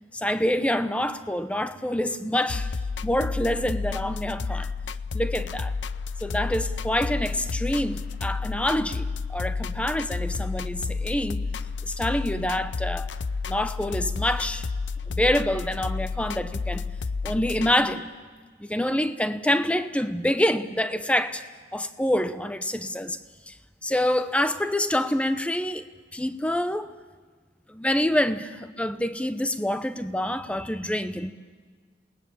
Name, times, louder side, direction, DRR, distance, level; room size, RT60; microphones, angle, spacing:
voice 1, 0.1-2.7 3.0-4.7 5.1-5.7 6.2-11.4 11.8-13.1 13.5-14.7 15.1-16.8 17.2-18.1 18.6-21.4 21.7-23.2 23.5-23.6 23.8-25.8 26.1-26.9 27.7-31.3, left 1 dB, 5° left, 0.8 m, -26 dB
sound 1, 2.5-17.7, left 4 dB, 85° left, 0.6 m, -31 dB
27.5 x 19.5 x 7.2 m
head